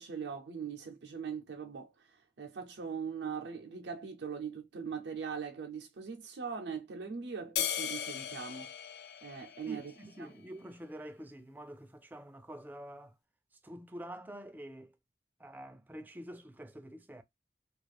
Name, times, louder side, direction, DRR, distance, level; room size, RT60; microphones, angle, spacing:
voice 1, 0.0-8.7 9.2-9.9 10.2-10.3, right 6 dB, 85° right, 0.5 m, -41 dB
sound 1, 7.6-10.2, left 9 dB, 70° left, 0.4 m, -37 dB
voice 2, 9.7-13.2 13.6-15.0 15.4-17.2, right 1 dB, 10° right, 0.3 m, -47 dB
2.4 x 2.3 x 3.2 m
head